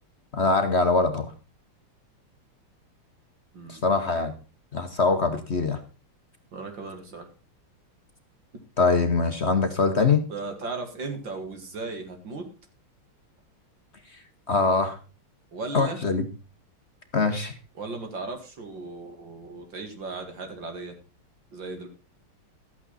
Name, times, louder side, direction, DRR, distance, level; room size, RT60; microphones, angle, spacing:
voice 1, 0.3-1.3 3.7-4.3 4.7-5.8 8.8-10.2 14.5-15.0 15.7-16.2 17.1-17.5, left 4 dB, 40° left, 7 dB, 1.0 m, -23 dB
voice 2, 3.5-3.9 6.5-7.3 10.0-12.5 15.5-16.0 17.8-21.0 21.5-21.9, right 3 dB, 60° right, 4 dB, 2.8 m, -36 dB
13.5 x 8.7 x 4.1 m, 0.34 s
omnidirectional pair, 2.4 m